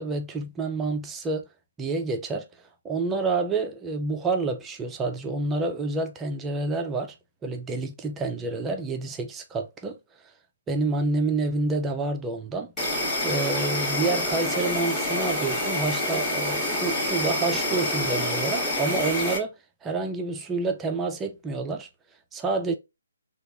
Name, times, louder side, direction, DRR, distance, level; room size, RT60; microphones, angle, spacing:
voice 1, 0.0-1.4 1.8-2.5 2.8-7.1 7.4-10.0 10.7-12.7 13.2-19.5 19.8-21.9 22.3-22.8, right 3 dB, 10° right, 0.4 m, -28 dB
Insect, 12.8-19.4, left 1 dB, 5° left, 0.9 m, -27 dB
2.8 x 2.3 x 3.4 m
hypercardioid pair, 165°, 0 cm